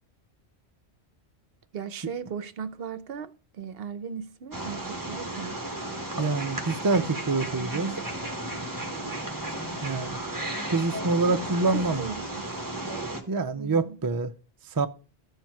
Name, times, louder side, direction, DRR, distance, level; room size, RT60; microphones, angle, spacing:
voice 1, 1.7-5.6 11.2-11.4 11.7-12.4 13.5-14.0, right 7 dB, 65° right, 0.9 m, -37 dB
Wild animals, 4.5-13.2, right 1 dB, 20° right, 1.3 m, -34 dB
voice 2, 6.2-7.9 9.8-10.2 10.7-12.1 13.3-14.3 14.7-14.9, right 3 dB, 35° right, 0.3 m, -26 dB
13.5 x 4.5 x 4.6 m
omnidirectional pair, 1.1 m